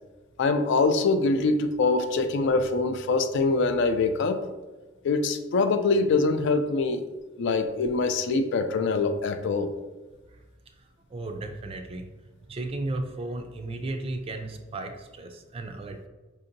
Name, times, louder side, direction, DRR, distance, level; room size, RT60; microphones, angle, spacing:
voice 1, 0.4-4.4 5.0-7.0 7.4-9.7, left 3 dB, 60° left, 9 dB, 0.3 m, -24 dB
voice 2, 11.1-12.1 12.5-16.1, right 2 dB, 30° right, 5 dB, 0.3 m, -34 dB
5.0 x 2.7 x 2.6 m, 1.2 s
head